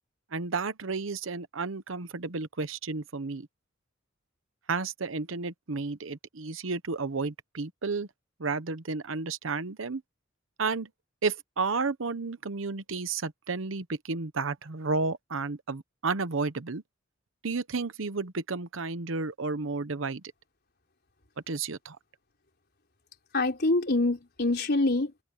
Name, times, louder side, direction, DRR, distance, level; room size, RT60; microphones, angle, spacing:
voice 1, 0.3-3.5 4.7-8.1 8.4-10.0 10.6-10.9 11.2-16.8 17.4-20.2 21.5-22.0, right 4 dB, 70° right, 0.9 m, -32 dB
voice 2, 23.3-25.2, left 2 dB, 55° left, 3.9 m, -25 dB
head